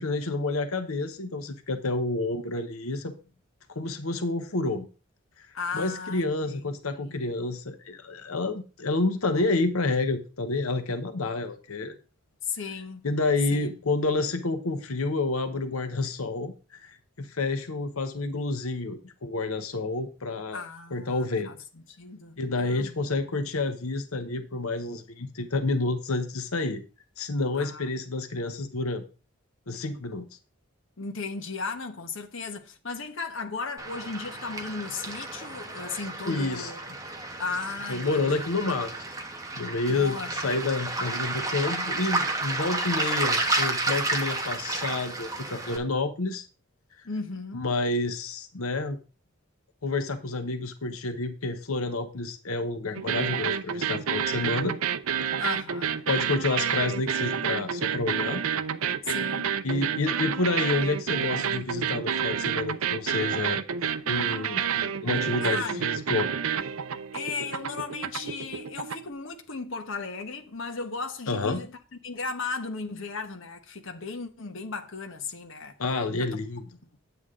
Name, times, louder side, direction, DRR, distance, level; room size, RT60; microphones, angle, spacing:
voice 1, 0.0-3.1 3.7-4.9 5.4-5.5 5.7-11.9 13.0-20.6 20.9-21.5 22.4-26.8 27.2-29.0 29.7-30.3 36.3-36.7 37.9-38.9 39.5-46.4 47.5-49.0 49.8-54.8 56.1-58.4 59.6-63.6 64.1-66.3 71.3-71.6 75.8-76.6, left 3 dB, 90° left, 1.0 m, -29 dB
voice 2, 5.5-6.6 7.0-7.3 12.4-13.0 13.5-13.8 20.5-21.6 22.0-23.0 27.6-27.9 31.0-36.8 37.4-38.6 39.9-40.4 47.0-47.6 55.4-56.0 59.0-59.5 65.4-65.9 67.1-71.8 72.0-75.8 76.2-76.3, left 4 dB, 65° left, 1.1 m, -36 dB
Waves surf, 33.8-45.8, right 2 dB, 15° right, 1.2 m, -31 dB
sound 1, 52.9-69.1, right 8 dB, 85° right, 0.6 m, -29 dB
9.6 x 8.1 x 3.7 m
head